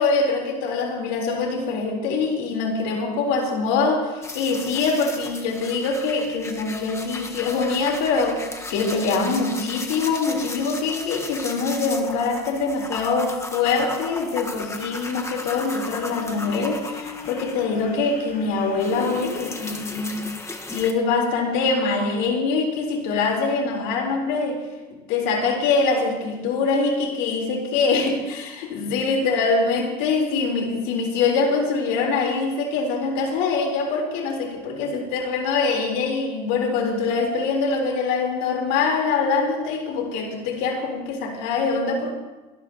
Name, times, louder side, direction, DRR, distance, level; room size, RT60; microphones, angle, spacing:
voice 1, 0.0-20.2 20.7-24.6 25.1-42.1, left 4 dB, 70° left, 1 dB, 3.9 m, -24 dB
sound 1, 4.2-18.0 18.3-20.9, left 2 dB, 15° left, 1.4 m, -36 dB
sound 2, 13.4-21.5, left 7 dB, 45° left, 3.0 m, -42 dB
24.0 x 12.0 x 3.0 m, 1.2 s
supercardioid pair, 90°, 21 cm